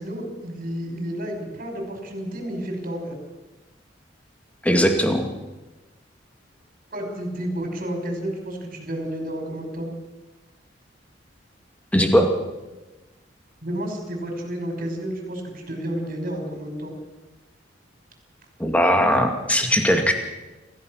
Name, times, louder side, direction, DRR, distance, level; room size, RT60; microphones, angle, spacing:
voice 1, 0.0-3.2 6.9-9.9 13.6-16.9, right 1 dB, 45° right, 2 dB, 5.5 m, -31 dB
voice 2, 4.6-5.3 11.9-12.3 18.6-20.1, equal, 5° left, 4 dB, 2.3 m, -19 dB
27.0 x 15.0 x 6.5 m, 1.1 s
head